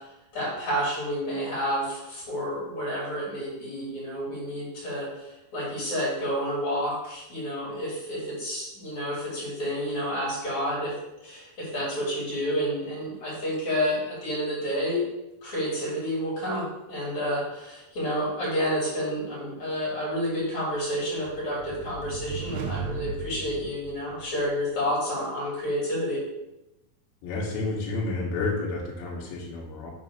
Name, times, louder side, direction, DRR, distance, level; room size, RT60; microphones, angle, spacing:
voice 1, 0.3-11.0 11.2-15.0 15.4-26.2, equal, 50° left, -7 dB, 3.8 m, -30 dB
sound 1, 20.9-24.6, right 3 dB, 85° right, 1.7 m, -37 dB
voice 2, 27.2-29.9, left 3 dB, 80° left, -4 dB, 3.2 m, -30 dB
6.7 x 3.3 x 5.9 m, 0.91 s
omnidirectional pair, 4.3 m